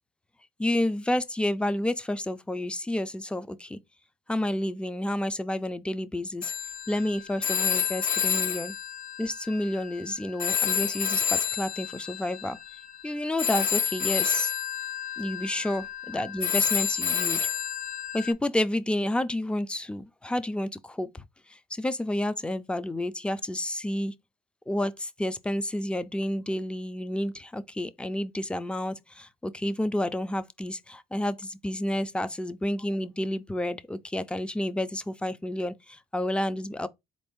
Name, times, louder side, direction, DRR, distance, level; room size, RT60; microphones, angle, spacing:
voice 1, 0.6-3.8 4.3-6.5 6.9-8.7 9.2-12.6 13.0-14.5 15.2-15.8 16.1-17.4 18.1-21.2 21.5-24.1 24.7-36.9, left 1 dB, 5° left, 0.3 m, -30 dB
Telephone, 6.4-10.1 10.4-18.3, left 7 dB, 55° left, 0.7 m, -29 dB
4.1 x 2.6 x 3.6 m
cardioid pair, 110°, 17 cm